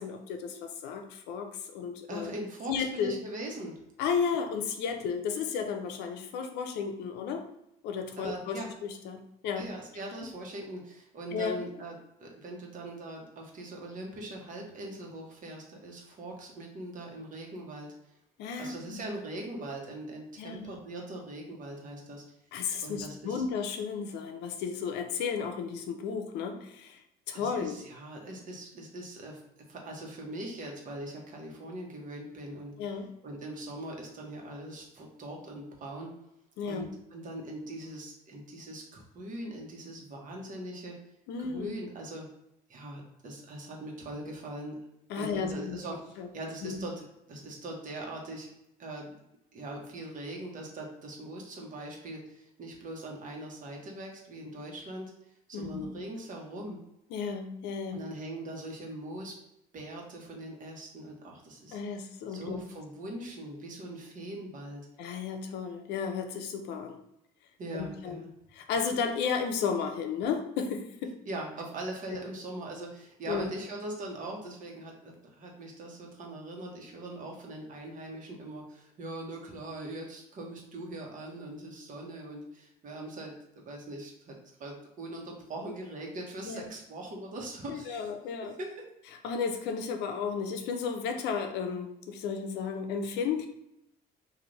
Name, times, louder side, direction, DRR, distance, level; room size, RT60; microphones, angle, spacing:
voice 1, 0.0-2.3 2.7-3.2 4.0-7.5 7.8-9.7 11.3-11.6 18.4-19.1 20.4-20.7 22.5-27.0 27.3-27.8 32.8-33.1 36.6-36.9 41.3-41.8 45.1-45.8 46.2-46.3 46.6-46.8 55.5-55.9 57.1-58.0 61.7-62.6 65.0-67.0 67.7-68.2 68.5-71.1 73.3-73.5 86.5-86.7 87.7-88.5 89.2-93.5, left 6 dB, 85° left, 6 dB, 0.5 m, -33 dB
voice 2, 2.1-3.8 8.2-8.7 9.5-11.9 12.2-18.2 18.6-22.2 22.8-23.4 27.3-29.4 29.7-32.7 33.2-36.1 36.6-41.0 41.4-42.3 42.7-44.8 45.2-46.0 46.3-48.5 48.8-49.2 49.5-56.8 57.9-59.3 59.7-62.0 62.3-64.8 67.6-68.3 71.3-83.3 83.6-84.3 84.6-88.1 88.6-88.8, right 1 dB, 50° right, 0 dB, 1.1 m, -41 dB
3.3 x 2.5 x 3.9 m, 0.82 s
cardioid pair, 110°, 17 cm